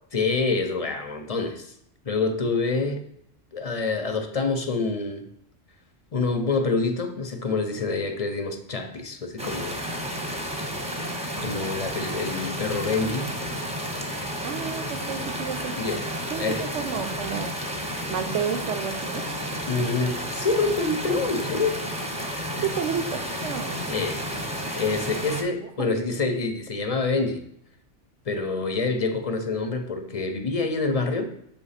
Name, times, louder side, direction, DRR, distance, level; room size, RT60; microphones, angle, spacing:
voice 1, 0.1-1.7 2.0-3.1 3.5-5.3 6.1-9.8 11.4-13.4 15.8-16.0 16.4-16.7 19.7-22.1 22.5-22.7 23.9-24.2 24.8-27.4 28.2-31.3, left 3 dB, 35° left, 6 dB, 0.6 m, -26 dB
sound 1, 9.4-25.4, equal, 5° right, 0.7 m, -31 dB
voice 2, 14.4-15.7 16.3-17.5 18.1-19.2 22.6-23.9 25.8-25.9, right 7 dB, 75° right, 9 dB, 1.0 m, -31 dB
7.0 x 3.1 x 5.6 m, 0.76 s
omnidirectional pair, 1.3 m